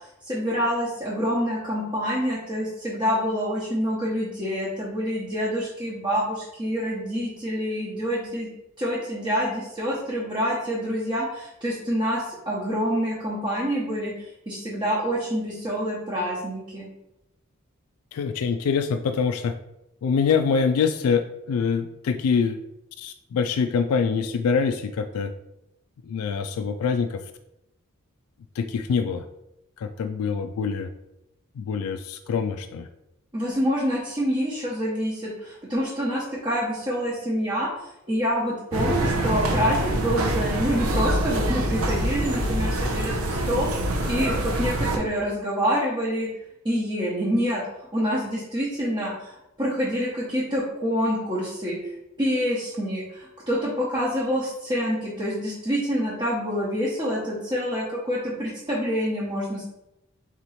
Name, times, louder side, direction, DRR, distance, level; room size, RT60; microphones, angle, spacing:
voice 1, 0.3-8.5 8.8-16.9 33.3-37.7 38.1-43.7 44.1-46.3 46.6-47.6 47.9-49.3 49.6-51.8 52.2-59.6, equal, 25° right, -8 dB, 1.0 m, -27 dB
voice 2, 18.1-19.5 20.0-22.6 23.0-25.3 26.1-27.1 28.6-29.2 29.8-30.9 31.6-32.8, left 5 dB, 75° left, 8 dB, 0.3 m, -24 dB
sound 1, 38.7-45.0, right 1 dB, 70° right, 0.8 m, -25 dB
4.0 x 3.0 x 4.1 m, 0.87 s
head